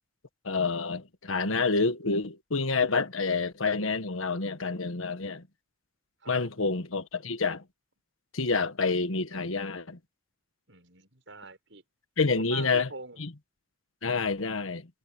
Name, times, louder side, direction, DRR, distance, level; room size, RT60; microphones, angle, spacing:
voice 1, 0.4-5.4 6.3-7.6 8.3-10.0 12.2-12.9 13.2-13.3 14.0-14.9, left 4 dB, 85° left, 1.5 m, -28 dB
voice 2, 10.7-11.8 12.3-13.2, right 3 dB, 65° right, 7.2 m, -44 dB
head